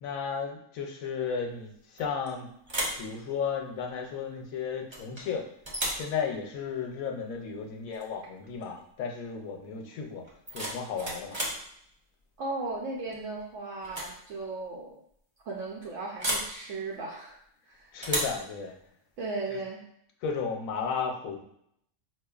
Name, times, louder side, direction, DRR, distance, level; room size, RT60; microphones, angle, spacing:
voice 1, 0.0-2.5 3.0-5.5 5.9-10.2 10.5-11.4 17.9-18.8 19.5-19.6 20.2-21.4, left 6 dB, 90° left, 2 dB, 1.0 m, -34 dB
sound 1, 2.0-2.3 2.6-3.1 4.9-5.3 5.6-6.1 7.9-8.1 8.4-8.8 10.2-11.6 13.1-13.4 13.8-14.2 14.4-14.5 16.2-16.5 18.0-18.4, right 1 dB, 30° right, 0.5 m, -33 dB
voice 2, 12.4-15.0 15.5-17.4 17.7-17.9 19.2-19.8, right 3 dB, 70° right, -3 dB, 0.9 m, -36 dB
4.5 x 2.4 x 2.3 m, 0.71 s
omnidirectional pair, 1.4 m